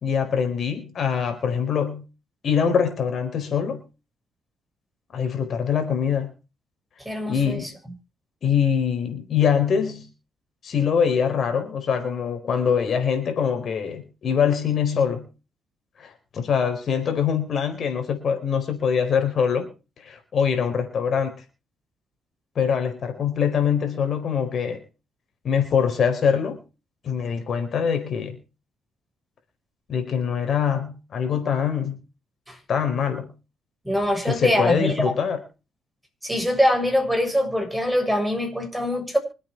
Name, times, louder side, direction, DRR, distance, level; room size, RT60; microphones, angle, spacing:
voice 1, 0.0-2.0 2.4-3.8 5.1-6.3 7.3-7.7 8.4-10.1 10.6-15.3 16.0-19.7 20.0-21.3 22.5-24.8 25.4-26.6 27.0-28.3 29.9-32.0 32.7-33.3 34.2-35.4, left 7 dB, 55° left, 4.5 m, -23 dB
voice 2, 7.1-7.7 32.5-32.6 33.9-34.9 36.2-39.2, equal, 5° right, 7.0 m, -23 dB
25.0 x 8.7 x 4.7 m
cardioid pair, 90°, 0 cm